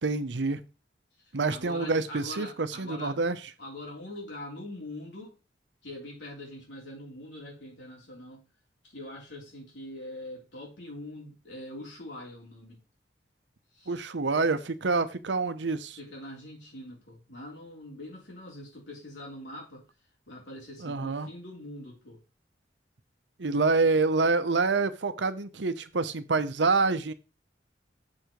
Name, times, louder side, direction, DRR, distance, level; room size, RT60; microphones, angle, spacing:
voice 1, 0.0-0.6 1.3-3.4 13.9-16.0 20.8-21.3 23.4-27.1, right 3 dB, 80° right, 0.8 m, -27 dB
voice 2, 1.2-3.2 3.6-5.4 5.8-8.5 8.8-12.8 13.7-14.0 16.0-19.9 20.3-22.2, left 1 dB, 85° left, 3.5 m, -43 dB
7.5 x 4.7 x 5.1 m
head